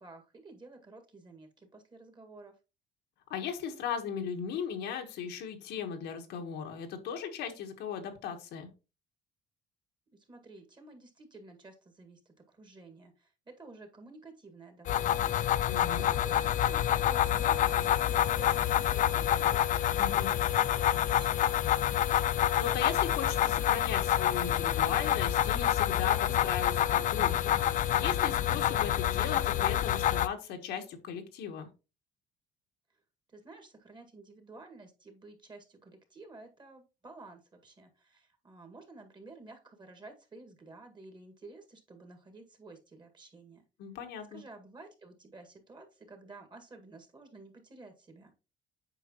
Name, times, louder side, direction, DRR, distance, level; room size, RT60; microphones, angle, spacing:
voice 1, 0.0-2.5 10.1-15.5 16.0-21.7 33.3-43.6 44.3-48.3, right 3 dB, 25° right, 5 dB, 1.9 m, -52 dB
voice 2, 3.3-8.7 15.7-16.1 20.0-20.3 22.6-31.7 43.8-44.4, left 7 dB, 85° left, 4 dB, 1.4 m, -37 dB
sound 1, 14.9-30.3, left 11 dB, 50° left, 0.4 m, -27 dB
8.2 x 5.1 x 3.0 m, 0.30 s
cardioid pair, 110°, 17 cm